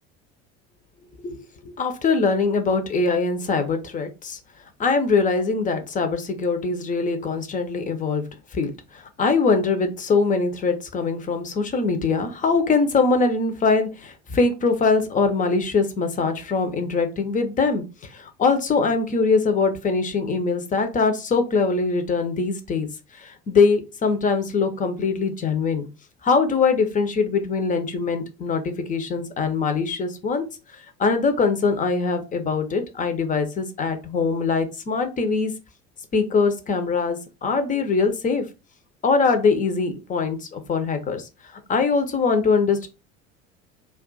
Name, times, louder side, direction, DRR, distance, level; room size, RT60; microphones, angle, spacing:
voice 1, 1.2-4.4 4.8-8.3 8.5-22.9 23.2-25.9 26.2-30.4 31.0-35.5 36.1-38.4 39.0-41.3 41.7-42.9, left 4 dB, 20° left, 7 dB, 0.6 m, -22 dB
2.4 x 2.3 x 3.8 m, 0.29 s
figure-of-eight pair, 65°, 37 cm